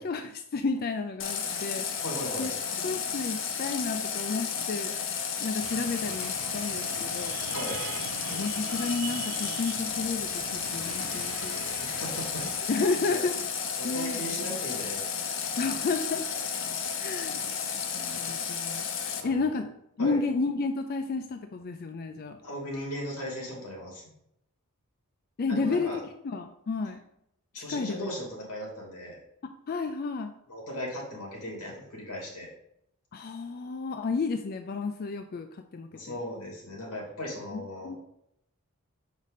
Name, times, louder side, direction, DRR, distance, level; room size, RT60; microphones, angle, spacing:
voice 1, 0.0-2.0 2.4-2.5 2.8-4.9 5.4-7.3 8.3-11.6 12.7-13.3 13.8-14.2 15.6-16.3 16.9-17.5 17.9-18.9 19.2-19.7 20.0-22.4 25.4-25.9 26.2-27.0 27.7-28.1 29.7-30.3 33.1-36.1 37.5-38.0, left 4 dB, 40° left, 6 dB, 0.4 m, -31 dB
Water tap faucet, 1.2-19.2, left 6 dB, 60° left, 0.8 m, -33 dB
voice 2, 2.0-2.5 7.5-7.8 11.8-13.2 13.7-15.5 19.2-19.6 20.0-20.2 22.4-24.0 25.5-26.0 27.5-29.2 30.5-32.5 35.9-38.0, equal, 90° left, -2 dB, 2.8 m, -37 dB
sound 1, 5.6-12.6, right 9 dB, 70° right, 0.3 m, -42 dB
6.3 x 5.2 x 4.1 m, 0.77 s
head